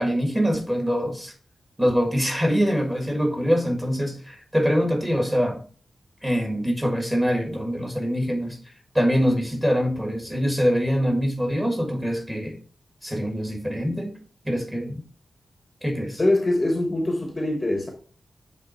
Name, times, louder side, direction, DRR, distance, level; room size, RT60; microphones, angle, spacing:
voice 1, 0.0-1.3 1.8-5.6 6.2-8.6 8.9-12.6 13.0-14.1 14.4-15.0 15.8-16.2, equal, 10° right, 1.6 m, -24 dB
voice 2, 16.2-17.9, left 1 dB, 20° left, 1.0 m, -23 dB
7.8 x 3.5 x 4.3 m
wide cardioid pair, 165°, 0 cm